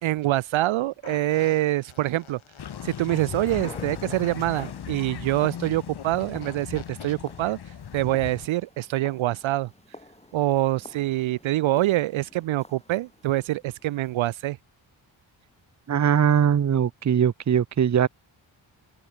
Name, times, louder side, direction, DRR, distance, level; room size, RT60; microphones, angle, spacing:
voice 1, 0.0-2.4 2.8-7.6 7.9-9.7 10.3-14.6, right 15 dB, 70° right, 0.6 m, -25 dB
Fart, 1.0-7.1, left 8 dB, 75° left, 5.3 m, -47 dB
sound 1, 2.6-8.5, left 9 dB, 50° left, 1.2 m, -38 dB
sound 2, 3.2-14.4, left 1 dB, 15° left, 7.4 m, -50 dB
voice 2, 15.9-18.1, right 8 dB, 35° right, 0.7 m, -21 dB
supercardioid pair, 45°, 49 cm